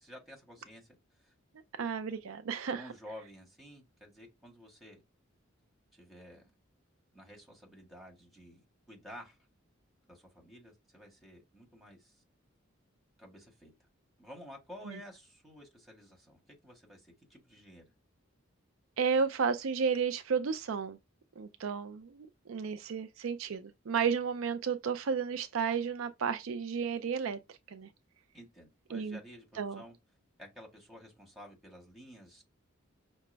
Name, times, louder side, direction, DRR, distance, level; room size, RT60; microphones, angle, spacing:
voice 1, 0.0-1.3 2.8-5.0 5.9-6.5 7.1-9.4 10.1-12.2 13.2-13.7 14.2-17.9 28.3-29.9 30.4-32.4, equal, ahead, 1.7 m, -52 dB
voice 2, 1.8-2.8 14.9-15.0 19.0-21.0 21.4-27.4 27.7-27.9 28.9-29.2 29.6-29.8, right 6 dB, 80° right, 0.5 m, -32 dB
5.8 x 2.1 x 3.3 m
head